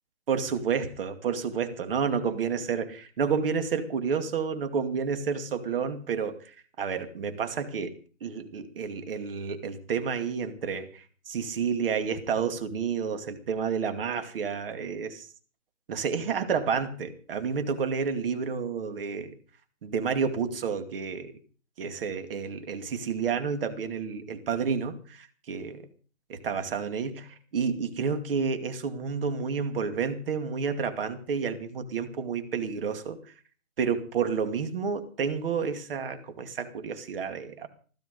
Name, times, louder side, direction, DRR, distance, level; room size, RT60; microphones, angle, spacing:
voice 1, 0.3-15.3 15.9-19.4 19.8-21.3 21.8-25.8 26.3-33.2 33.8-37.7, right 6 dB, 40° right, 8 dB, 2.4 m, -30 dB
16.5 x 14.0 x 5.4 m, 0.40 s
hypercardioid pair, 170°, 42 cm